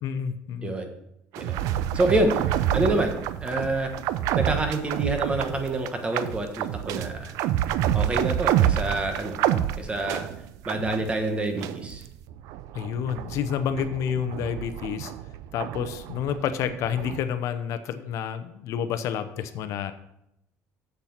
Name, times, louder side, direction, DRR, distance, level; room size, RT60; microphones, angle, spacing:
voice 1, 0.0-0.8 12.7-15.1 15.5-19.9, left 8 dB, 65° left, 10 dB, 0.7 m, -29 dB
sound 1, 1.3-11.2 11.5-17.2, right 11 dB, 75° right, 0.5 m, -28 dB
voice 2, 1.9-2.3 2.7-3.9 4.4-7.3 7.9-9.4 9.8-10.3 10.6-12.0, right 2 dB, 20° right, 5 dB, 1.3 m, -27 dB
7.4 x 6.7 x 5.8 m, 0.82 s
cardioid pair, 135°, 6 cm